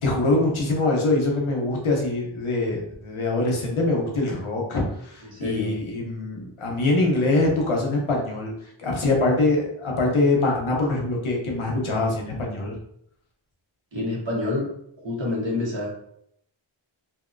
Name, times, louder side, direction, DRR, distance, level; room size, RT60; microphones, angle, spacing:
voice 1, 0.0-8.5 8.8-12.7, left 2 dB, 80° left, -1 dB, 0.9 m, -23 dB
voice 2, 5.2-5.7 13.9-14.7 15.0-15.9, left 2 dB, 65° right, -4 dB, 1.3 m, -27 dB
2.8 x 2.7 x 2.5 m, 0.71 s
wide cardioid pair, 45°, 49 cm